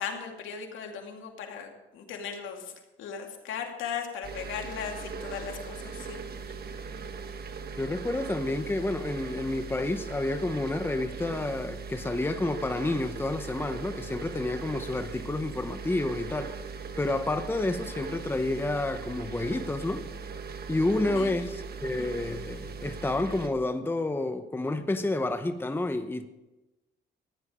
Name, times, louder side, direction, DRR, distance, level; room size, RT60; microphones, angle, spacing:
voice 1, 0.0-6.2 21.1-21.3, left 7 dB, 80° left, 2.5 m, -37 dB
sound 1, 4.2-23.5, right 5 dB, 50° right, 1.3 m, -39 dB
voice 2, 7.8-16.5 17.0-20.0 20.7-26.3, left 2 dB, 10° left, 0.8 m, -30 dB
14.5 x 10.5 x 5.0 m
cardioid pair, 90°, 20 cm